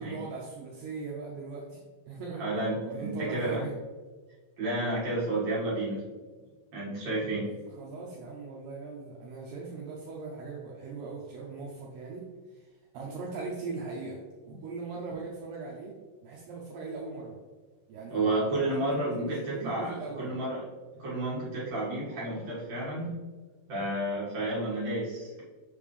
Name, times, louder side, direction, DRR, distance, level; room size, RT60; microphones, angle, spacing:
voice 1, 0.0-1.8 2.1-2.5 2.8-3.7 7.4-15.9 16.2-17.4 17.9-20.4, right 4 dB, 85° right, -3 dB, 2.3 m, -40 dB
voice 2, 2.4-3.7 4.6-6.1 6.7-7.5 14.5-14.6 18.1-20.6 21.0-23.2 23.7-25.4, right 1 dB, 50° right, -8 dB, 2.3 m, -31 dB
6.7 x 5.3 x 3.3 m, 1.4 s
omnidirectional pair, 5.7 m